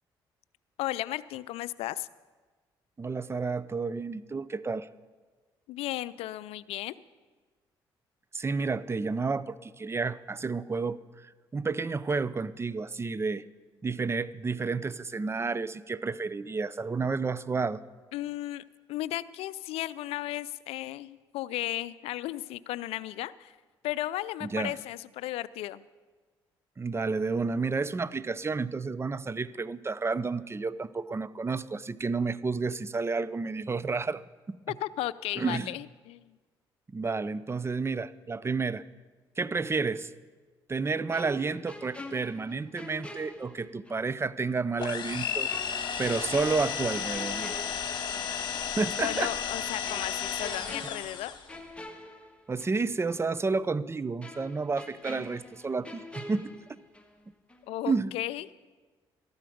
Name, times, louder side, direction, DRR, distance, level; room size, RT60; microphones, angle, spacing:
voice 1, 0.8-2.1 5.7-6.9 18.1-18.6 18.9-23.5 23.8-25.8 34.8-36.3 49.0-51.3 57.7-58.5, left 15 dB, 75° left, 18 dB, 0.4 m, -35 dB
voice 2, 3.0-4.9 8.3-11.0 11.5-13.4 13.8-17.8 24.4-24.7 26.8-34.2 34.5-34.6 35.4-35.7 36.9-38.8 39.4-40.1 40.7-45.5 46.0-47.5 48.8-49.3 52.5-56.6 57.9-58.1, right 4 dB, 25° right, 18 dB, 0.6 m, -31 dB
sound 1, 41.1-44.1 44.4-44.5 45.5-48.4 48.8-49.0 49.8-52.8 53.1-53.3 54.2-57.2 57.5-57.7, left 1 dB, 10° left, 1.6 m, -46 dB
sound 2, 44.8-51.5, left 7 dB, 50° left, 1.7 m, -33 dB
13.5 x 12.0 x 5.1 m, 1.4 s
supercardioid pair, 60°, 10 cm